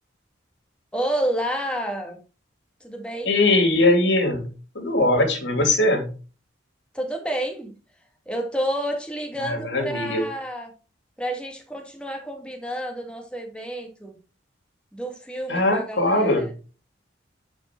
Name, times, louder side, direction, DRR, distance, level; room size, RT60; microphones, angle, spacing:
voice 1, 0.9-2.2 2.8-3.3 6.9-7.7 8.3-10.7 11.2-14.1 14.9-16.5, right 1 dB, 5° left, 2 dB, 2.0 m, -29 dB
voice 2, 3.3-4.5 4.7-6.1 9.4-10.2 15.5-16.4, left 2 dB, 65° left, 5 dB, 2.6 m, -20 dB
10.0 x 5.1 x 4.4 m, 0.35 s
head